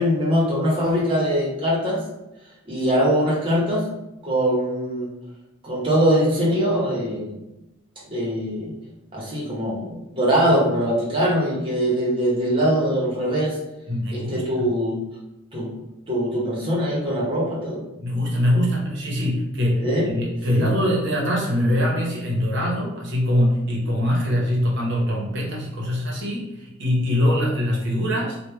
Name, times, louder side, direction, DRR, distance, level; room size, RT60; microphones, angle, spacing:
voice 1, 0.0-2.0 2.7-3.8 4.2-5.1 5.6-7.4 8.0-8.7 9.1-13.6 14.1-15.0 15.5-15.7 16.1-17.8 19.8-20.1 20.5-20.7, equal, 25° right, -5 dB, 1.0 m, -22 dB
voice 2, 13.9-14.7 18.0-28.4, equal, 60° right, -2 dB, 1.0 m, -23 dB
3.2 x 2.3 x 3.4 m, 0.92 s
head